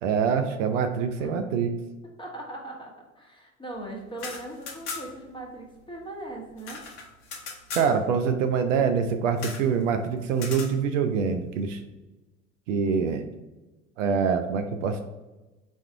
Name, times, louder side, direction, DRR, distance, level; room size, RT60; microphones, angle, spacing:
voice 1, 0.0-1.7 7.7-11.8 12.7-13.2 14.0-15.0, right 6 dB, 70° right, 8 dB, 0.6 m, -25 dB
voice 2, 2.2-6.8, right 1 dB, 10° left, -1 dB, 1.1 m, -39 dB
sound 1, 4.1-5.3 5.6-5.7 5.9-7.9 9.4-9.7 10.3-10.7, left 4 dB, 55° left, 0.9 m, -38 dB
4.3 x 2.4 x 4.4 m, 1.1 s
figure-of-eight pair, 70°, 39 cm